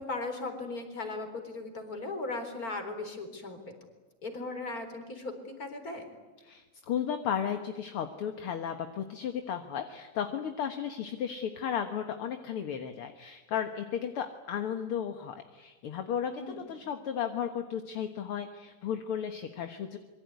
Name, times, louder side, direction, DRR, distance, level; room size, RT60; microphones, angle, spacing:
voice 1, 0.0-3.6 4.2-6.1 16.3-16.6, left 3 dB, 25° left, 7 dB, 4.2 m, -37 dB
voice 2, 6.4-20.0, left 8 dB, 55° left, 7 dB, 2.0 m, -34 dB
26.0 x 23.5 x 9.4 m, 1.2 s
omnidirectional pair, 3.6 m